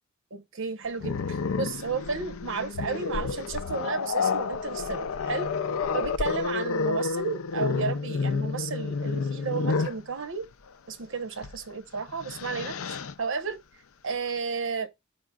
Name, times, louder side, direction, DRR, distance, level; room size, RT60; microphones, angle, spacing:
voice 1, 0.3-5.5 5.9-10.5 10.9-13.6 14.0-14.9, right 5 dB, 65° right, 0.9 m, -33 dB
Growling, 1.0-10.0 11.4-11.6 12.0-13.1, left 4 dB, 90° left, 0.5 m, -30 dB
13.5 x 5.0 x 2.3 m
head